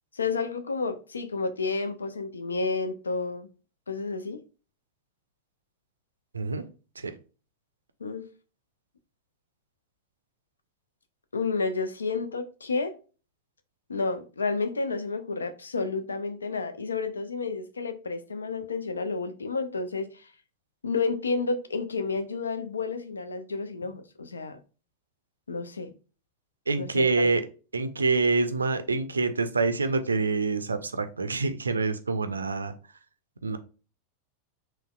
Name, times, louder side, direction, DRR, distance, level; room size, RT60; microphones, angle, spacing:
voice 1, 0.1-3.5 3.9-4.4 8.0-8.3 11.3-13.0 13.9-20.3 20.8-24.6 25.5-25.9 26.8-27.3, left 4 dB, 75° left, 0.4 m, -30 dB
voice 2, 26.7-27.4 27.7-32.7 33.4-33.6, right 3 dB, 75° right, 0.4 m, -26 dB
3.9 x 2.1 x 2.3 m
figure-of-eight pair, 90°, 0 cm